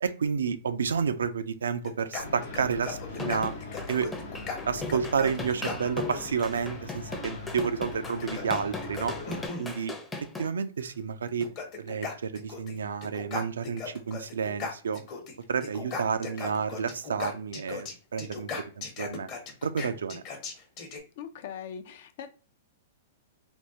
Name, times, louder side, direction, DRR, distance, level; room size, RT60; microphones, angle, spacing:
voice 1, 0.0-3.5 3.9-4.1 4.5-9.2 9.6-11.5 11.8-15.0 15.5-19.3 19.6-20.2, right 6 dB, 85° right, 11 dB, 0.3 m, -30 dB
sound 1, 1.8-6.6 7.9-9.7 10.8-10.9 11.3-12.8 13.0-15.3 15.6-21.0, left 4 dB, 40° left, 0.9 m, -38 dB
sound 2, 2.2-9.5, left 3 dB, 80° left, 0.9 m, -41 dB
sound 3, 3.1-10.5, left 3 dB, 10° left, 0.6 m, -38 dB
voice 2, 21.2-22.3, left 8 dB, 60° left, 9 dB, 0.4 m, -40 dB
3.5 x 2.3 x 2.7 m, 0.35 s
hypercardioid pair, 120°, 0 cm